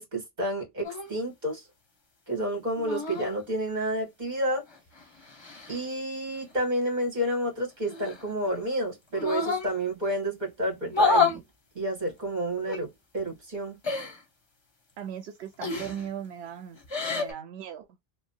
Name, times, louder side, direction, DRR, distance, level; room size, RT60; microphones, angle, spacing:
voice 1, 0.0-1.7 2.3-4.6 5.7-11.4 11.7-13.8, right 1 dB, 45° right, 1.6 m, -30 dB
sound 1, 0.8-1.1 2.8-3.4 4.7-5.8 7.9-8.6 9.1-9.7 10.9-11.4 12.7-12.8 13.8-14.2 15.6-16.1 16.8-17.3, left 4 dB, 30° left, 0.7 m, -28 dB
voice 2, 15.0-16.8 17.1-17.9, right 9 dB, 90° right, 0.8 m, -38 dB
3.1 x 2.0 x 2.5 m
omnidirectional pair, 1.0 m